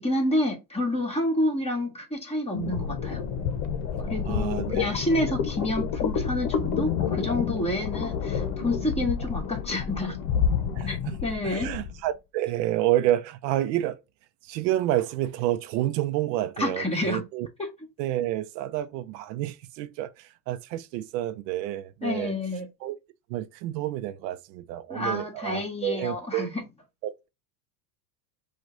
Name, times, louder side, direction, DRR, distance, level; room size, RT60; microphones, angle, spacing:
voice 1, 0.0-3.2 4.0-10.2 10.9-11.7 16.6-17.2 22.0-22.7 24.9-26.5, left 1 dB, 10° left, 1.9 m, -29 dB
sound 1, 2.5-12.0, left 7 dB, 55° left, 1.0 m, -29 dB
voice 2, 4.2-4.9 5.3-5.4 10.7-11.2 11.4-14.0 14.4-17.5 18.0-22.3 22.8-23.0 23.3-26.6 27.0-27.3, right 13 dB, 80° right, 0.7 m, -29 dB
4.8 x 2.5 x 3.9 m
supercardioid pair, 115°, 50 cm